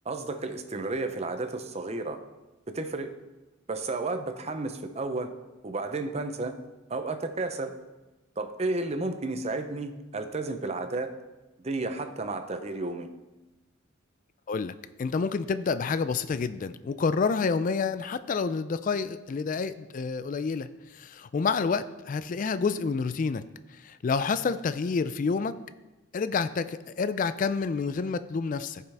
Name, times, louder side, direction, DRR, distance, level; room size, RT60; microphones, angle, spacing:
voice 1, 0.0-2.2 2.7-3.1 3.7-5.3 5.6-6.6 6.9-7.7 8.4-11.2 11.6-13.1, right 2 dB, 30° right, 8 dB, 0.6 m, -32 dB
voice 2, 15.0-20.7 20.9-23.4 23.7-25.5 26.1-28.8, left 5 dB, 40° left, 13 dB, 0.3 m, -28 dB
14.5 x 5.6 x 3.4 m, 1.1 s
head